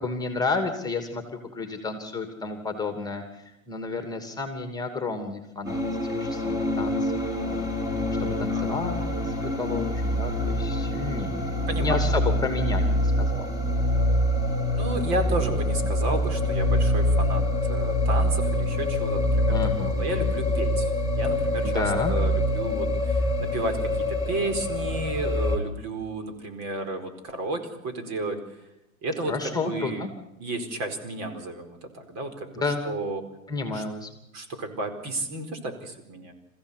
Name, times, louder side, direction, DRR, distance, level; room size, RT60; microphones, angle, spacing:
voice 1, 0.0-7.7 8.2-13.5 15.5-15.6 19.5-19.9 21.6-22.1 29.3-30.1 32.5-32.8 33.5-34.1, left 3 dB, 10° left, 6 dB, 2.8 m, -31 dB
sound 1, 5.7-25.6, left 1 dB, 10° right, 4.1 m, -25 dB
voice 2, 8.5-9.2 11.7-12.3 14.7-20.9 21.2-28.4 29.0-30.1 30.4-33.2 33.7-33.8 34.3-36.3, right 2 dB, 40° right, 7 dB, 4.6 m, -32 dB
27.5 x 15.5 x 8.4 m, 0.90 s
hypercardioid pair, 120°, 40 cm